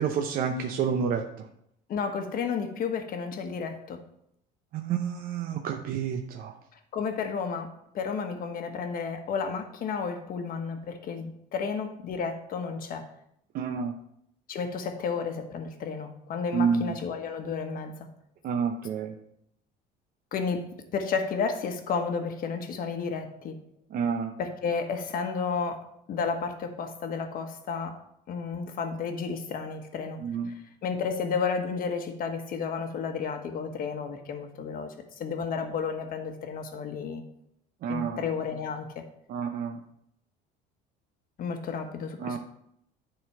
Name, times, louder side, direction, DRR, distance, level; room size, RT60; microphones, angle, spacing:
voice 1, 0.0-1.5 4.7-6.6 13.5-13.9 16.5-16.9 18.4-19.1 23.9-24.3 30.2-30.5 37.8-38.2 39.3-39.8 42.2-42.4, right 6 dB, 50° right, 4 dB, 0.7 m, -29 dB
voice 2, 1.9-4.0 6.9-13.1 14.5-18.1 20.3-23.5 24.4-28.0 28.3-30.2 30.5-30.6 30.8-37.2 37.9-39.0 41.4-42.4, left 5 dB, 45° left, 6 dB, 1.2 m, -32 dB
10.0 x 3.9 x 4.7 m, 0.75 s
cardioid pair, 130°, 20 cm